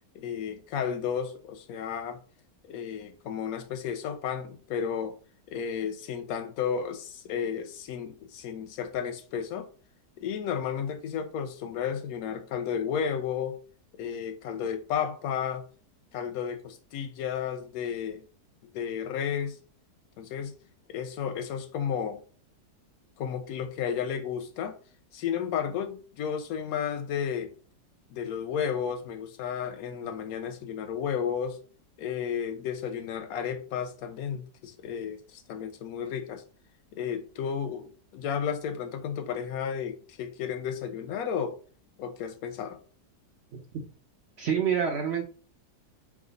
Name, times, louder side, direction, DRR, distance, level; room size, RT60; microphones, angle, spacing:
voice 1, 0.1-2.2 2.7-5.1 5.5-9.7 10.2-13.6 14.0-15.6 16.1-18.2 18.7-19.6 20.2-20.6 20.9-22.2 23.2-24.8 25.1-27.5 28.1-31.6 32.0-36.4 36.9-41.6 42.0-42.8, left 7 dB, 65° left, 1.1 m, -33 dB
voice 2, 43.5-43.8 44.4-45.2, right 7 dB, 65° right, 0.6 m, -27 dB
4.8 x 2.1 x 3.8 m
omnidirectional pair, 1.7 m